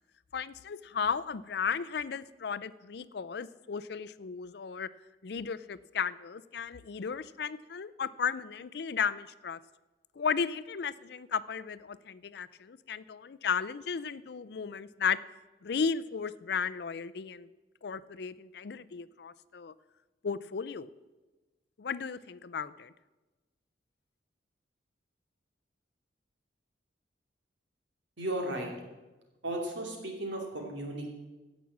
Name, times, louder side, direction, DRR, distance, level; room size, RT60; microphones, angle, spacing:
voice 1, 0.3-4.9 5.2-9.6 10.2-15.2 15.6-17.5 17.8-19.7 20.2-20.9 21.8-22.9, left 6 dB, 60° left, 15 dB, 0.4 m, -34 dB
voice 2, 28.2-28.7 29.4-31.1, right 1 dB, 85° right, 1 dB, 2.9 m, -35 dB
16.5 x 6.1 x 7.4 m, 1.2 s
head